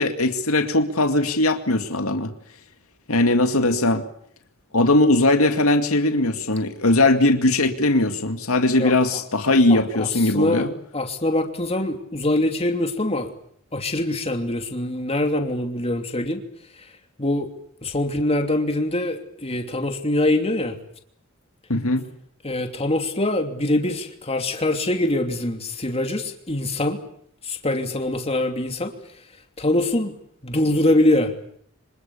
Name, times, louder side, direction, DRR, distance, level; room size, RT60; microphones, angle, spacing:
voice 1, 0.0-2.3 3.1-4.0 4.7-10.7 21.7-22.0, left 2 dB, 85° left, 6 dB, 2.2 m, -19 dB
voice 2, 8.8-9.2 9.7-10.1 10.3-10.7 10.9-13.3 13.7-16.4 17.2-17.5 17.8-20.8 22.4-27.0 27.4-28.9 29.6-30.1 30.4-31.3, left 1 dB, 30° left, 5 dB, 2.9 m, -23 dB
26.0 x 25.5 x 7.2 m, 0.67 s
head